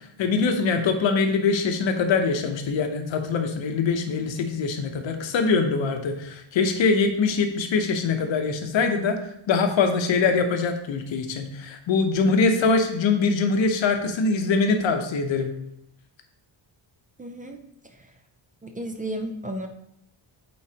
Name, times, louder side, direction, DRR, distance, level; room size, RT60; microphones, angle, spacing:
voice 1, 0.2-9.2 9.5-15.5, left 4 dB, 65° left, 6 dB, 0.9 m, -23 dB
voice 2, 17.2-17.6 18.6-19.7, right 1 dB, 20° right, 4 dB, 0.4 m, -33 dB
8.5 x 3.9 x 2.9 m, 0.76 s
wide cardioid pair, 155°, 49 cm